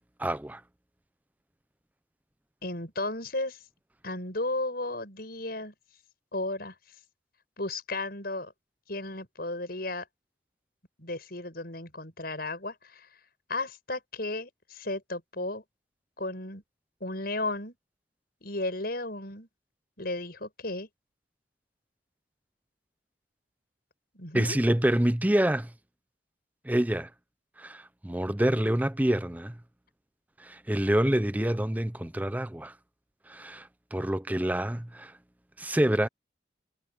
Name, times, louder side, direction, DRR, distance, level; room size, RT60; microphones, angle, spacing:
voice 1, 0.2-0.6 24.3-25.7 26.6-27.1 27.6-29.6 30.4-32.7 33.3-35.1 35.6-36.1, right 1 dB, 10° right, 0.6 m, -27 dB
voice 2, 2.6-3.6 4.0-5.7 6.3-6.7 7.6-8.5 8.9-10.0 11.0-13.1 13.5-15.6 16.2-16.6 17.0-17.7 18.4-19.5 20.0-20.9 24.1-24.6, left 2 dB, 50° left, 7.5 m, -34 dB
head